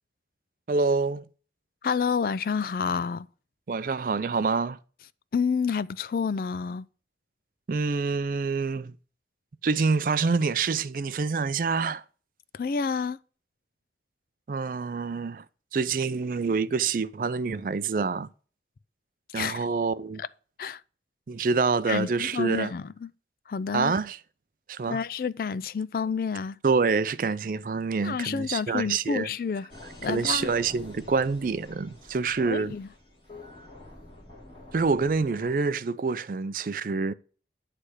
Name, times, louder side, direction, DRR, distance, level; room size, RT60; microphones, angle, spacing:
voice 1, 0.7-1.3 3.7-4.8 7.7-8.9 9.6-12.0 14.5-15.4 15.7-18.3 19.3-20.2 21.3-22.7 23.7-24.2 24.7-25.0 26.6-29.3 30.1-32.7 34.7-37.1, right 4 dB, 50° right, 0.4 m, -26 dB
voice 2, 1.8-3.3 5.3-6.9 12.5-13.2 19.3-19.6 20.6-20.8 21.9-23.1 23.5-23.9 24.9-26.6 28.0-29.7 30.0-30.5 32.5-32.9, left 5 dB, 55° left, 0.3 m, -29 dB
sound 1, 29.7-35.5, left 2 dB, 30° left, 2.7 m, -48 dB
9.8 x 3.3 x 6.3 m
head